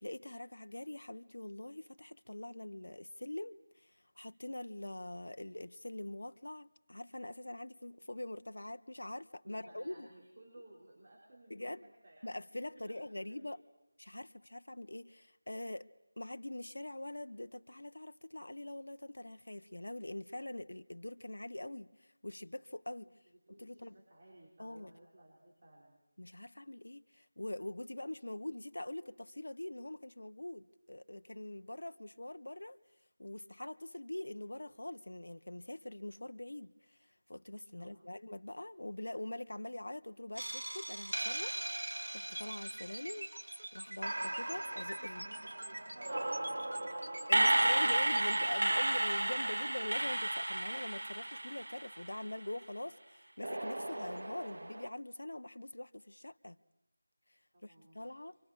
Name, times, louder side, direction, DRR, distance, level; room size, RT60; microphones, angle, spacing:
voice 1, 0.0-10.1 11.5-11.8 12.2-13.6 14.0-15.9 16.2-23.1 23.6-24.0 24.6-24.9 26.2-32.8 33.2-37.0 37.3-41.6 42.1-45.2 47.3-56.6 57.6-58.4, left 1 dB, 80° left, 1.1 m, -44 dB
voice 2, 9.4-12.3 12.7-13.6 23.3-26.0 37.7-38.0 45.2-48.4 57.5-58.1, right 1 dB, 35° right, 5.5 m, -58 dB
sound 1, 40.4-43.5 44.0-52.4 53.4-54.9, right 1 dB, 80° right, 0.9 m, -34 dB
sound 2, 42.3-48.5, right 1 dB, 60° right, 3.8 m, -45 dB
28.5 x 25.5 x 6.4 m
figure-of-eight pair, 175°, 0 cm